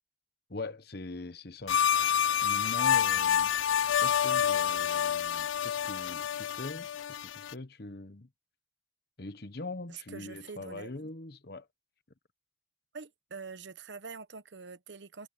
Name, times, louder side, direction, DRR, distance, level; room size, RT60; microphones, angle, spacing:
voice 1, 0.5-1.8 2.4-3.5 4.0-8.3 9.2-11.7, left 2 dB, 55° left, 1.2 m, -42 dB
sound 1, 1.7-7.5, left 9 dB, 80° left, 0.4 m, -28 dB
voice 2, 9.9-11.1 12.9-15.3, right 5 dB, 65° right, 1.0 m, -45 dB
head